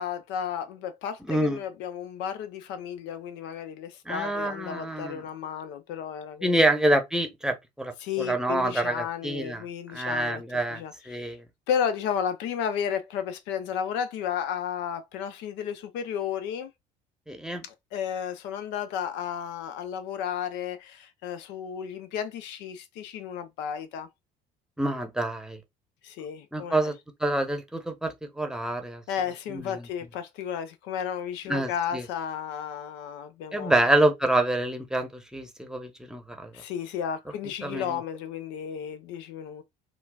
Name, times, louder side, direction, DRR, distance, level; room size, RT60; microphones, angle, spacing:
voice 1, 0.0-6.6 8.0-10.4 10.7-11.3 11.7-16.7 17.6-24.1 26.0-26.9 29.1-33.8 36.5-39.6, left 8 dB, 60° left, 0.5 m, -33 dB
voice 2, 1.2-1.6 4.1-5.2 6.4-9.6 9.9-11.4 17.3-17.6 24.8-25.6 26.5-29.0 29.5-29.9 31.5-32.0 33.5-36.5 37.6-38.0, right 1 dB, 5° right, 0.8 m, -27 dB
3.7 x 2.3 x 2.3 m
hypercardioid pair, 55°, 21 cm